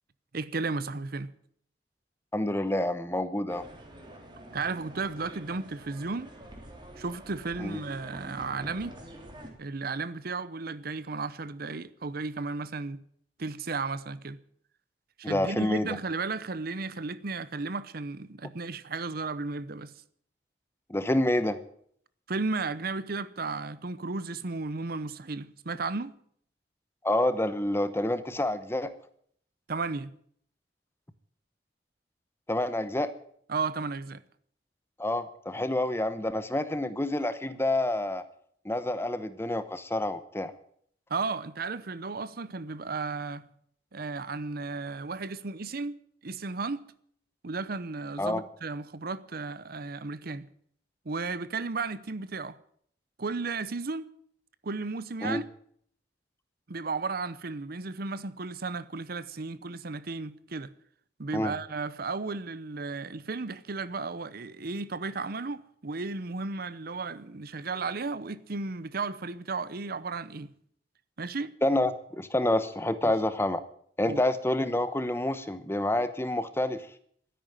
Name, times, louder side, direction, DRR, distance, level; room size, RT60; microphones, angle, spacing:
voice 1, 0.3-1.3 4.5-6.3 7.0-9.0 9.6-13.0 13.4-14.4 15.2-19.9 22.3-26.2 29.7-30.1 33.5-34.2 41.1-43.5 43.9-46.9 47.4-50.5 51.0-52.6 53.2-54.1 54.6-55.4 56.7-60.7 61.2-70.5 71.2-71.5 73.0-73.1 74.0-74.2, right 4 dB, 55° right, 0.8 m, -34 dB
voice 2, 2.3-3.7 7.6-7.8 15.2-16.0 20.9-21.6 27.0-28.9 32.5-33.1 35.0-38.2 38.6-40.5 48.2-48.4 55.2-55.4 61.3-61.5 71.6-73.6 74.0-76.9, left 1 dB, 15° left, 0.9 m, -28 dB
sound 1, 3.5-9.5, right 1 dB, 25° right, 3.1 m, -47 dB
13.0 x 10.5 x 9.0 m
head